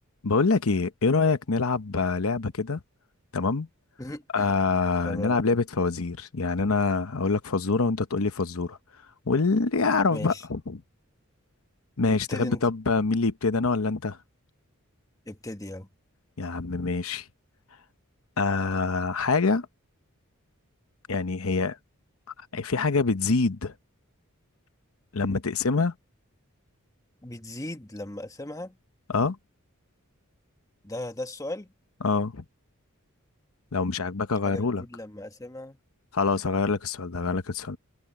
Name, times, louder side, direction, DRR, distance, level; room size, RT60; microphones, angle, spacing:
voice 1, 0.2-2.8 3.3-3.7 4.3-8.8 9.3-10.8 12.0-14.2 16.4-17.3 18.4-19.7 21.1-21.8 22.4-23.7 25.1-25.9 29.1-29.4 32.0-32.4 33.7-34.8 36.1-37.8, left 4 dB, 75° left, 0.9 m, -25 dB
voice 2, 4.0-4.6 5.0-5.4 10.1-10.4 12.1-12.7 15.3-15.9 27.2-28.8 30.8-31.7 34.4-35.8, left 1 dB, 15° left, 1.4 m, -37 dB
head